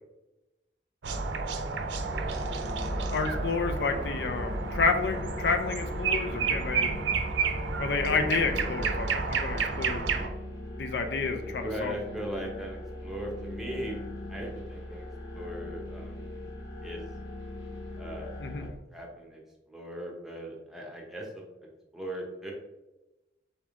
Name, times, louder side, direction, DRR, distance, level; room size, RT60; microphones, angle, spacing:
sound 1, 1.0-10.3, right 4 dB, 80° right, 0.5 m, -31 dB
voice 1, 2.0-2.4 11.6-14.0 14.3-16.4 16.8-17.1 18.0-19.4 19.7-21.7 21.9-22.5, right 1 dB, ahead, -1 dB, 0.8 m, -39 dB
sound 2, 2.2-18.7, left 2 dB, 20° left, 1.4 m, -40 dB
voice 2, 3.1-6.9 7.8-10.0 10.8-11.9 18.4-18.7, left 4 dB, 65° left, 6 dB, 0.4 m, -30 dB
4.1 x 3.5 x 3.5 m, 1.0 s
head